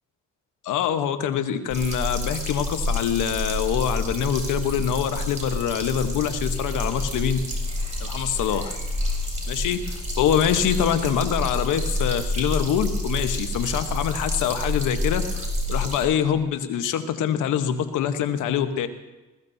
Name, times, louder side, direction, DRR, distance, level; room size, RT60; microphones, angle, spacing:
voice 1, 0.6-7.4 8.0-8.7 9.5-18.9, left 9 dB, 85° left, 9 dB, 1.1 m, -25 dB
sound 1, 1.7-16.0, left 1 dB, 25° right, 4.3 m, -28 dB
21.0 x 15.0 x 2.7 m, 1.1 s
cardioid pair, 90°, 30 cm